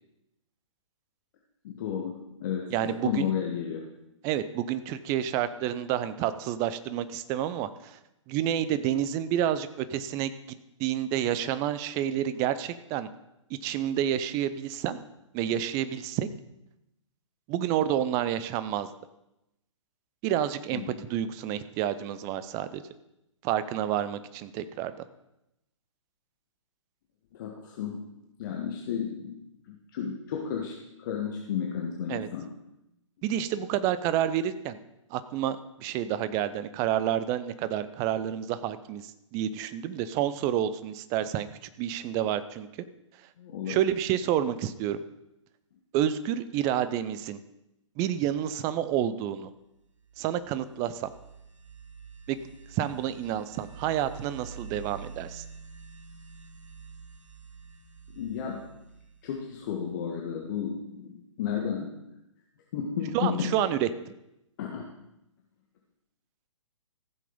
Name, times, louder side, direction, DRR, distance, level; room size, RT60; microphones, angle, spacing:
voice 1, 1.6-3.8 20.7-21.0 27.3-28.0 28.4-29.4 29.7-30.7 31.0-32.5 43.4-43.8 58.1-58.6 59.2-62.0 62.7-63.5 64.6-64.9, left 8 dB, 40° left, 0 dB, 1.6 m, -32 dB
voice 2, 2.7-3.3 4.2-8.0 8.3-10.3 10.8-13.1 13.6-15.0 15.3-16.3 17.5-18.9 20.2-20.8 21.1-22.8 23.4-24.9 32.1-32.3 33.2-34.8 35.1-42.7 43.7-45.0 45.9-47.4 48.0-49.5 50.2-51.1 52.3-52.4 52.7-55.4 63.1-63.9, right 11 dB, 20° right, 13 dB, 0.5 m, -29 dB
sound 1, 49.7-60.3, right 6 dB, 75° right, 1.5 m, -47 dB
15.0 x 7.5 x 5.3 m, 0.87 s
figure-of-eight pair, 125°, 17 cm